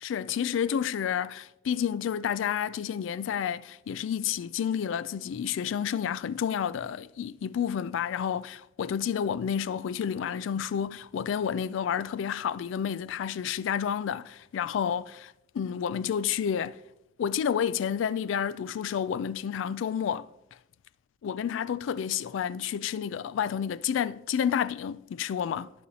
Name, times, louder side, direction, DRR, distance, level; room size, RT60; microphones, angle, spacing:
voice 1, 0.0-16.8 17.2-20.3 21.2-25.7, left 8 dB, 70° left, 0.3 m, -30 dB
14.0 x 5.4 x 2.8 m
head